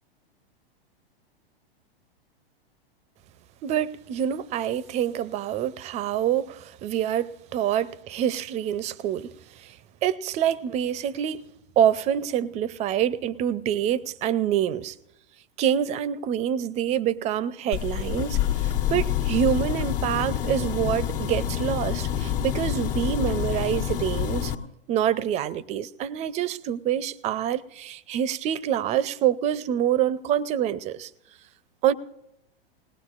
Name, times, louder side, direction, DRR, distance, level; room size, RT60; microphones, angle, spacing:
voice 1, 3.6-9.8 10.0-11.5 11.8-15.0 15.6-24.5 24.9-31.1 31.8-31.9, right 10 dB, 25° right, 0.4 m, -26 dB
sound 1, 17.7-24.5, left 10 dB, 60° left, 1.3 m, -27 dB
20.5 x 19.0 x 2.4 m
hypercardioid pair, 120°, 30 cm